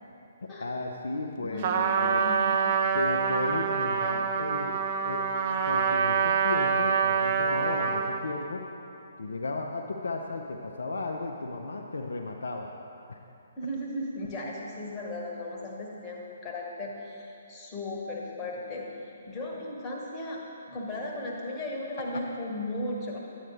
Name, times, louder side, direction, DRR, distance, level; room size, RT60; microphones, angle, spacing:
voice 1, 0.6-2.2 2.9-5.3 5.6-8.7 9.2-12.7 13.1-13.2, left 2 dB, 65° left, 1 dB, 0.5 m, -34 dB
voice 2, 1.4-2.8 13.6-18.9 19.3-20.4 20.7-23.2, left 1 dB, 20° left, -2 dB, 1.3 m, -36 dB
Trumpet, 1.6-8.2, right 6 dB, 35° right, 0.5 m, -26 dB
10.5 x 8.7 x 3.1 m, 2.8 s
figure-of-eight pair, 130°, 0 cm